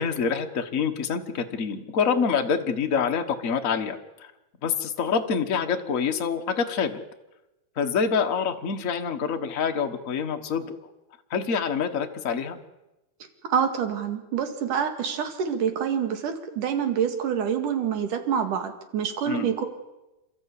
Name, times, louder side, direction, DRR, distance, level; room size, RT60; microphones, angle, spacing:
voice 1, 0.0-4.3 4.6-7.0 7.8-10.7 11.3-12.6 19.2-19.5, left 6 dB, 65° left, 5 dB, 0.8 m, -26 dB
voice 2, 13.5-19.7, right 7 dB, 75° right, 6 dB, 3.5 m, -26 dB
28.5 x 13.5 x 8.4 m, 1.0 s
omnidirectional pair, 3.7 m